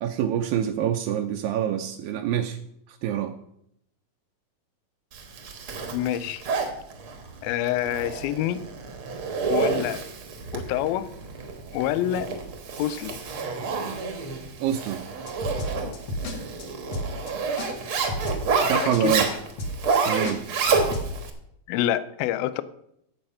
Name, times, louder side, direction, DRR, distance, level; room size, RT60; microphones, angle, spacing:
voice 1, 0.0-2.6 2.9-3.3 14.6-15.0 18.6-19.3 20.1-20.4, right 10 dB, 80° right, 5 dB, 2.3 m, -26 dB
Zipper (clothing), 5.1-21.3, right 4 dB, 55° right, 1.6 m, -29 dB
voice 2, 5.9-6.4 7.4-8.6 9.5-10.0 10.5-11.1 11.7-12.3 12.8-13.2 18.7-19.2 21.7-22.6, left 12 dB, 85° left, 15 dB, 2.5 m, -27 dB
sound 1, 15.3-16.3 16.6-16.7 16.9-17.3 17.6-17.7 17.9-18.6 18.9-19.3 19.6-20.0 20.2-21.1, equal, 50° left, 2.3 m, -31 dB
12.0 x 7.9 x 5.6 m, 0.76 s
omnidirectional pair, 4.2 m